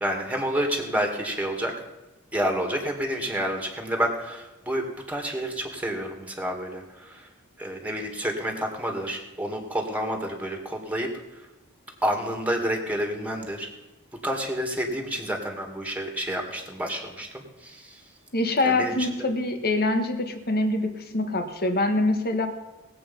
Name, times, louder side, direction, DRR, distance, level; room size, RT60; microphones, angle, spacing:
voice 1, 0.0-1.7 2.3-7.3 7.6-11.1 12.0-13.7 14.2-18.0 18.6-19.3, equal, 5° right, 3 dB, 2.3 m, -29 dB
voice 2, 18.3-22.5, left 2 dB, 45° left, 6 dB, 1.6 m, -24 dB
20.0 x 8.4 x 5.6 m, 0.99 s
head